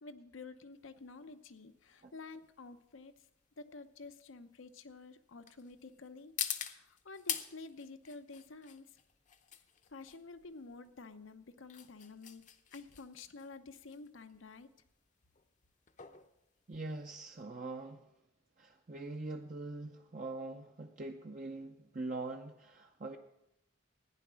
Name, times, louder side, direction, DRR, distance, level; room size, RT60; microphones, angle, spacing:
voice 1, 0.0-3.3 3.6-9.0 9.9-12.5 12.7-14.7, left 3 dB, 85° left, 10 dB, 0.8 m, -50 dB
sound 1, 0.8-17.4, left 10 dB, 40° left, 0.7 m, -46 dB
voice 2, 16.7-18.0 18.6-23.2, right 2 dB, 40° right, 3 dB, 0.6 m, -43 dB
15.0 x 10.0 x 6.2 m, 0.88 s
head